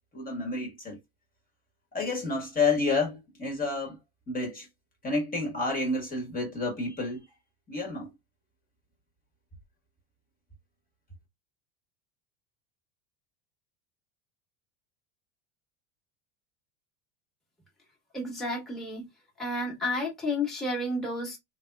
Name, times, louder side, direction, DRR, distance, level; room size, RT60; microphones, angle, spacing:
voice 1, 0.1-1.0 1.9-4.0 4.3-4.7 5.0-7.2 7.7-8.1, left 3 dB, 20° left, 1.2 m, -29 dB
voice 2, 18.1-19.1 19.4-21.4, left 1 dB, ahead, 1.2 m, -31 dB
3.5 x 2.9 x 2.3 m
supercardioid pair, 125°, 40 cm